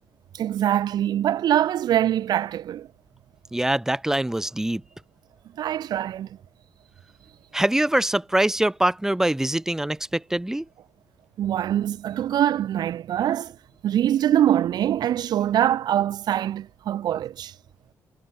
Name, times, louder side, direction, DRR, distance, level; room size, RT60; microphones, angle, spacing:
voice 1, 0.3-2.9 5.6-6.3 11.4-13.5 13.8-17.5, right 11 dB, 75° right, 6.6 m, -23 dB
voice 2, 3.5-4.8 7.5-10.6, right 1 dB, 5° right, 4.0 m, -23 dB
cardioid pair, 115°, 7 cm